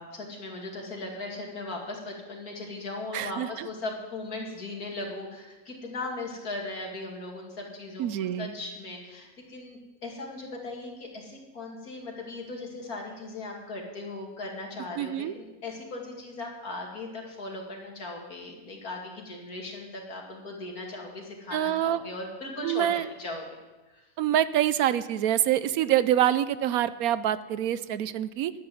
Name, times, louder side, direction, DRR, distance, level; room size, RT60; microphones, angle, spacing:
voice 1, 0.0-23.4 23.9-24.0, left 2 dB, 75° left, 0 dB, 2.9 m, -38 dB
voice 2, 3.1-3.7 8.0-8.5 15.0-15.3 21.5-22.0 22.6-23.1 24.2-28.5, right 11 dB, 75° right, 15 dB, 1.0 m, -26 dB
11.0 x 10.0 x 7.8 m, 1.1 s
omnidirectional pair, 1.6 m